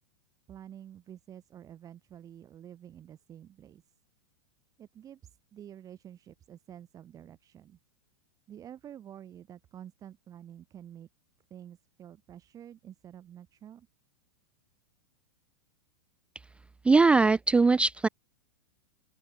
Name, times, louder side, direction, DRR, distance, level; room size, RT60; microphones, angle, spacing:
voice 1, 0.5-3.8 4.8-7.8 8.5-11.1 11.5-13.9, right 10 dB, 25° right, 1.7 m, -49 dB
voice 2, 16.8-18.1, right 3 dB, 10° right, 0.4 m, -21 dB
open air
figure-of-eight pair, 100°, 13 cm